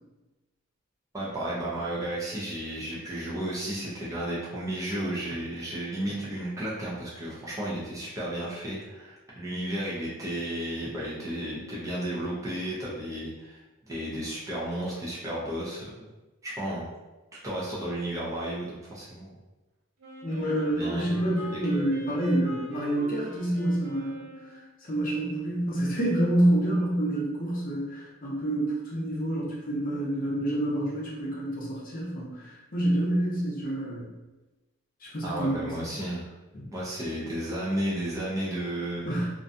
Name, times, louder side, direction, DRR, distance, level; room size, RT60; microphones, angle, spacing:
voice 1, 1.1-13.6 13.9-15.8 16.4-16.9 17.4-19.3 20.7-21.2 35.2-36.2 36.7-39.1, right 1 dB, 15° right, -7 dB, 0.5 m, -33 dB
Wind instrument woodwind instrument, 20.0-24.7, right 1 dB, 80° right, 0.5 m, -43 dB
voice 2, 20.2-24.2 24.5-24.6 24.9-34.1 35.0-35.7 39.1-39.3, right 1 dB, 40° left, -5 dB, 0.6 m, -27 dB
2.5 x 2.2 x 2.6 m, 1.1 s
head